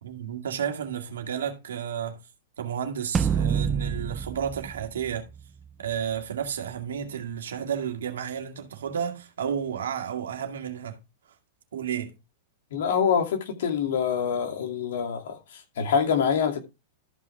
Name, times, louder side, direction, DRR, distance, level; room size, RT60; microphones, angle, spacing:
voice 1, 0.0-2.2 2.6-5.3 5.8-11.0 11.7-12.2, right 8 dB, 80° right, 2.1 m, -32 dB
sound 1, 3.1-5.7, right 7 dB, 20° right, 0.6 m, -28 dB
voice 2, 12.7-16.6, left 7 dB, 70° left, 2.5 m, -25 dB
13.5 x 5.7 x 3.4 m
hypercardioid pair, 110°, 0 cm